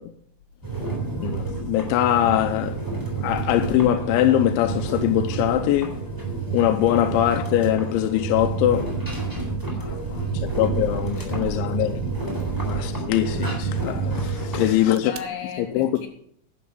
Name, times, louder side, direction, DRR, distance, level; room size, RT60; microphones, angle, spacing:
sound 1, 0.6-14.7, right 4 dB, 5° right, 2.8 m, -29 dB
voice 1, 1.2-2.8 3.2-6.0 6.5-9.0 10.3-12.0 12.6-15.1 15.6-15.9, left 13 dB, 85° left, 3.1 m, -22 dB
sound 2, 7.8-7.9 8.3-12.8 13.2-13.7 14.6-15.2, right 6 dB, 80° right, 3.3 m, -38 dB
voice 2, 9.7-10.4 11.1-11.9 12.4-12.5 14.4-16.1, left 6 dB, 60° left, 4.5 m, -39 dB
11.0 x 10.0 x 6.2 m
omnidirectional pair, 5.3 m